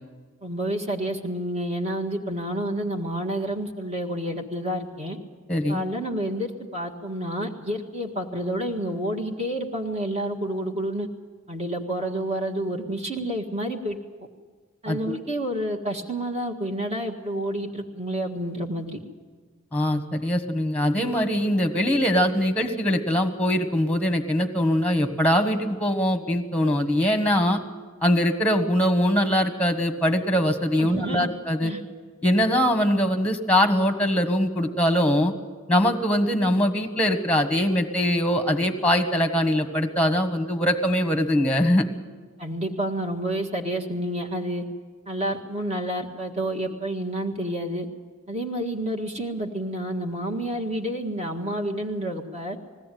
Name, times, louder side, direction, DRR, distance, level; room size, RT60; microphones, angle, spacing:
voice 1, 0.4-5.2 5.7-11.1 11.5-14.0 14.8-19.0 30.8-31.3 31.6-31.8 42.4-44.6 45.1-47.9 48.3-52.6, right 1 dB, 30° right, 2 dB, 1.7 m, -29 dB
voice 2, 5.5-5.8 14.9-15.2 19.7-27.6 28.0-31.7 32.2-35.3 35.7-41.8, equal, 5° left, 7 dB, 1.4 m, -22 dB
20.5 x 16.5 x 9.2 m, 1.4 s
head